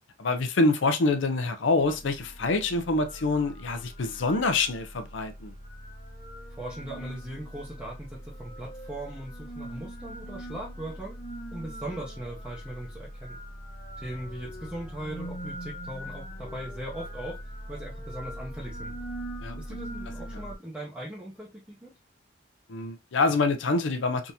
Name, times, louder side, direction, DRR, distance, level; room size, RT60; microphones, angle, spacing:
voice 1, 0.2-5.5 19.4-19.6 20.3-20.4 22.7-24.3, left 3 dB, 75° left, 0.6 m, -26 dB
sound 1, 1.8-20.5, equal, 35° left, 1.0 m, -41 dB
voice 2, 6.6-11.2 11.5-13.4 14.0-17.4 17.7-19.0 19.6-21.9, right 1 dB, 5° right, 0.7 m, -39 dB
3.5 x 2.7 x 2.7 m
head